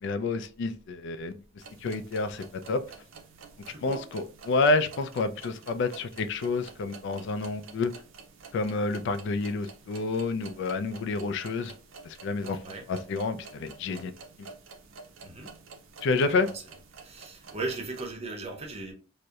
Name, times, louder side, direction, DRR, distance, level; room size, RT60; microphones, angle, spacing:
voice 1, 0.0-1.4 1.8-2.8 3.8-7.9 8.5-11.7 12.0-12.6 12.9-14.5 16.0-16.5, left 3 dB, 60° left, 0.3 m, -29 dB
sound 1, 1.6-18.1, right 5 dB, 80° right, 0.5 m, -50 dB
voice 2, 3.7-4.1 12.6-12.9 15.2-15.5 16.2-16.6 17.0-18.9, right 2 dB, 30° right, 0.6 m, -37 dB
2.7 x 2.0 x 2.3 m
head